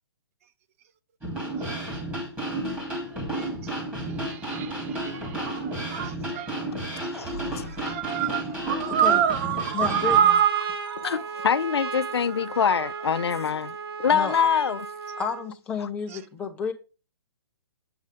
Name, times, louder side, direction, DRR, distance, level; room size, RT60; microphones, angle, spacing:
sound 1, 1.2-10.2, right 1 dB, 10° right, 2.9 m, -32 dB
voice 1, 3.1-3.5 4.2-6.6 7.2-7.3 7.7-11.2 12.6-12.7, right 9 dB, 35° right, 0.6 m, -26 dB
voice 2, 7.1-7.9 11.0-14.9 15.8-15.9, left 7 dB, 90° left, 0.5 m, -25 dB
voice 3, 8.9-9.2 9.7-10.4 14.1-14.5 15.2-16.7, left 6 dB, 10° left, 0.9 m, -31 dB
Trumpet, 9.6-15.5, right 5 dB, 70° right, 1.2 m, -35 dB
8.1 x 6.3 x 3.5 m
hypercardioid pair, 155°, 13 cm